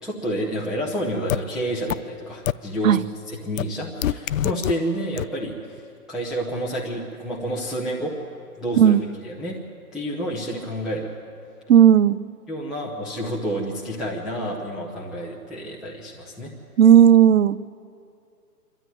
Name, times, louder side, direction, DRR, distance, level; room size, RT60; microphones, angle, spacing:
voice 1, 0.0-3.0 3.3-5.8 6.1-8.2 8.6-9.6 9.9-11.1 12.5-16.5, equal, ahead, -6 dB, 0.7 m, -29 dB
sound 1, 1.3-1.4 1.9-2.0 2.5-2.6 3.6-3.7 4.0-4.7 5.2-5.3, left 11 dB, 55° left, 0.5 m, -23 dB
voice 2, 11.7-12.2 16.8-17.6, right 9 dB, 55° right, 17 dB, 0.8 m, -13 dB
26.5 x 13.0 x 9.2 m, 2.4 s
hypercardioid pair, 155°, 47 cm